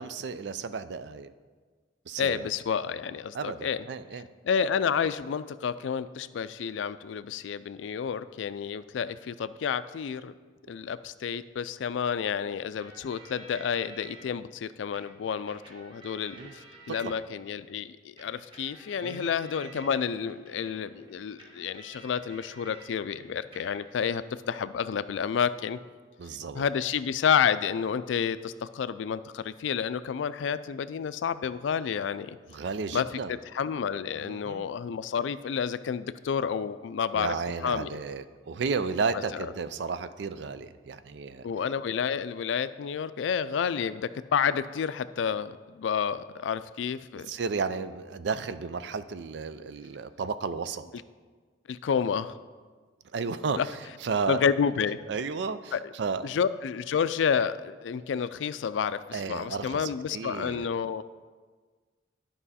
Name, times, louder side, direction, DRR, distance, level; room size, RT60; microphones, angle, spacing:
voice 1, 0.0-1.3 2.1-2.5 3.3-4.3 16.4-16.5 16.9-17.1 19.0-19.3 19.7-19.8 26.2-26.7 32.5-33.3 34.2-34.6 37.1-41.5 47.3-50.8 53.1-54.4 55.1-56.3 59.1-60.7, right 5 dB, 65° right, 12 dB, 0.4 m, -33 dB
voice 2, 2.2-3.8 4.4-10.3 10.7-25.8 26.5-32.4 32.9-33.1 33.5-37.4 37.6-38.0 41.4-47.3 51.7-52.4 53.6-53.7 54.3-55.0 55.7-55.8 56.2-61.0, left 7 dB, 90° left, 14 dB, 0.3 m, -30 dB
sound 1, 12.8-14.2 14.9-17.5 18.2-22.9 23.2-24.1, right 2 dB, 30° right, 1.3 m, -51 dB
11.5 x 5.4 x 4.2 m, 1.5 s
head